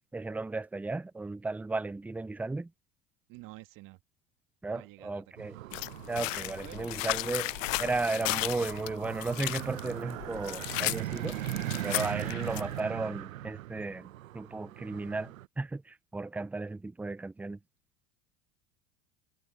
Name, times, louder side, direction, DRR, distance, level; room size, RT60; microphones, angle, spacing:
voice 1, 0.1-2.7 4.6-5.6 6.1-11.4 11.8-14.1 14.3-17.6, right 3 dB, 5° right, 0.3 m, -35 dB
voice 2, 3.3-4.0 4.7-5.2 6.4-7.0, right 20 dB, 55° right, 2.0 m, -49 dB
sound 1, 5.4-15.5, right 15 dB, 85° right, 0.7 m, -40 dB
sound 2, 5.7-12.8, left 21 dB, 70° left, 0.6 m, -35 dB
hypercardioid pair, 85°, 40 cm